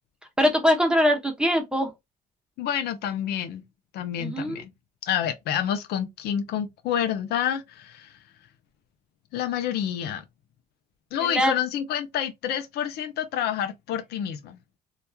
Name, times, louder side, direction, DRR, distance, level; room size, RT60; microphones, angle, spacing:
voice 1, 0.4-1.9 4.2-4.6 11.2-11.5, equal, 5° right, 0.8 m, -22 dB
voice 2, 2.6-3.6 3.9-4.7 5.1-8.1 9.3-10.2 11.1-14.6, left 9 dB, 70° left, 0.5 m, -28 dB
2.9 x 2.3 x 2.2 m
cardioid pair, 110°, 17 cm